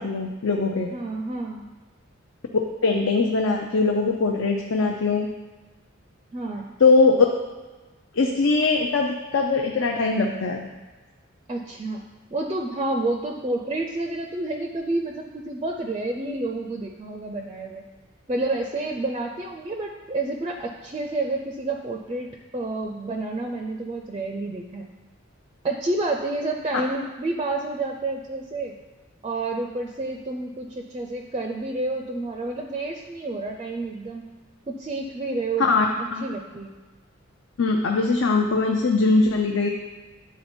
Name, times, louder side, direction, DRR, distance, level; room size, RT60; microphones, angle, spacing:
voice 1, 0.0-0.9 2.8-5.3 6.8-7.3 8.1-10.7 35.7-35.9 36.1-36.2 37.6-39.7, left 3 dB, 65° left, 1 dB, 0.6 m, -21 dB
voice 2, 0.9-1.6 6.3-6.7 11.5-12.0 12.3-17.8 18.3-24.9 25.6-28.8 29.2-34.3 34.7-35.7 36.0-36.7, right 2 dB, 25° right, 2 dB, 0.4 m, -29 dB
9.4 x 4.0 x 4.3 m, 1.3 s
head